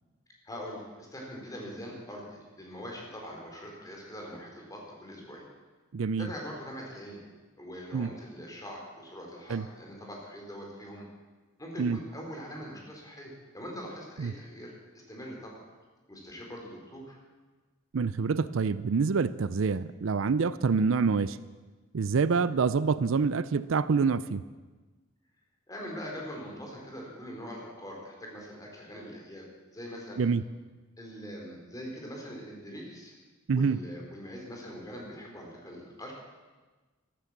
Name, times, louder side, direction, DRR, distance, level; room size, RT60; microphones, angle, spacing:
voice 1, 0.4-5.5 6.2-7.2 7.6-11.0 11.6-15.6 16.1-17.2 25.7-29.4 29.7-30.2 31.0-33.2 33.5-36.1, equal, 15° left, -1 dB, 3.8 m, -42 dB
voice 2, 5.9-6.3 7.9-8.1 9.5-9.6 11.8-12.0 14.2-14.3 17.9-21.4 21.9-24.4 30.2-30.4 33.5-33.8, right 5 dB, 70° right, 16 dB, 0.5 m, -26 dB
14.0 x 12.5 x 7.3 m, 1.3 s
head